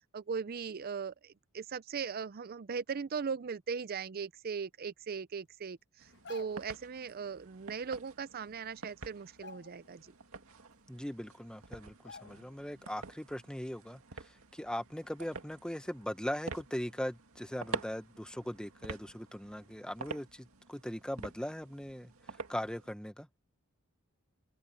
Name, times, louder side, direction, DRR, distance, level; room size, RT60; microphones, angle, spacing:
voice 1, 0.1-10.1, right 6 dB, 45° right, 0.5 m, -39 dB
sound 1, 6.0-22.9, right 4 dB, 80° right, 2.1 m, -48 dB
sound 2, 6.1-6.8 8.3-8.4 8.7-8.9 9.3-10.1 10.5-10.6 11.4-11.5 12.0-12.7 13.0-13.2, left 4 dB, 55° left, 0.7 m, -52 dB
voice 2, 10.9-14.0 14.5-22.1 22.5-23.3, equal, 5° left, 0.9 m, -39 dB
head